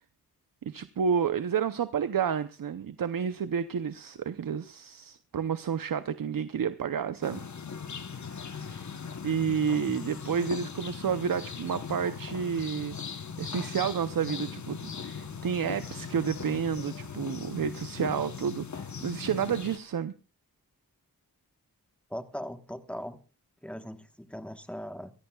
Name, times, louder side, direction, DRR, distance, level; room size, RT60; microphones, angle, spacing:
voice 1, 0.6-7.5 8.2-8.9 9.2-20.1, right 7 dB, 70° right, 0.7 m, -30 dB
sound 1, 7.2-19.8, left 6 dB, 55° left, 1.0 m, -39 dB
voice 2, 22.1-23.2 23.6-25.1, equal, 5° left, 1.2 m, -39 dB
23.5 x 16.0 x 2.3 m
wide cardioid pair, 85°, 35 cm